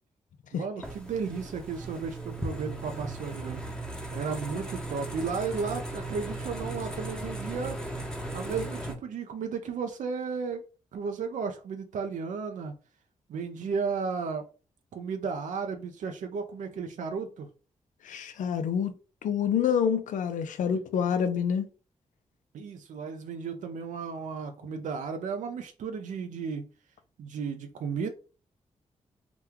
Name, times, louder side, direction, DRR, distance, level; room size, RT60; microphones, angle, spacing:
voice 1, 0.5-3.6 4.1-7.8 8.3-10.6 10.9-12.7 13.3-14.4 14.9-17.5 22.5-26.7 27.2-28.1, right 5 dB, 75° right, 0.4 m, -34 dB
sound 1, 0.8-9.0, right 1 dB, 5° left, 0.8 m, -37 dB
voice 2, 18.0-18.9 19.2-21.7, left 7 dB, 85° left, 0.4 m, -27 dB
2.9 x 2.2 x 3.5 m
cardioid pair, 65°, 13 cm